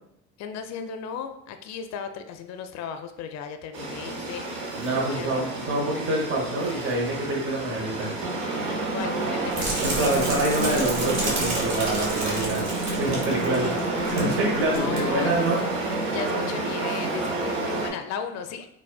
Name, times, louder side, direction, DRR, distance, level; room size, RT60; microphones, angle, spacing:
voice 1, 0.4-4.5 5.0-5.5 8.9-9.8 13.4-13.9 14.7-15.3 16.1-18.7, left 7 dB, 50° left, 7 dB, 0.4 m, -35 dB
sound 1, 3.7-17.9, right 2 dB, 90° right, 0.7 m, -29 dB
voice 2, 4.8-8.1 9.8-12.6 13.0-13.7 14.2-15.6, right 1 dB, 35° right, -2 dB, 0.9 m, -26 dB
sound 2, 9.5-14.4 14.6-15.0 15.5-15.6, right 1 dB, 65° right, 1.3 m, -31 dB
4.1 x 2.2 x 2.2 m, 0.75 s
hypercardioid pair, 65°, 36 cm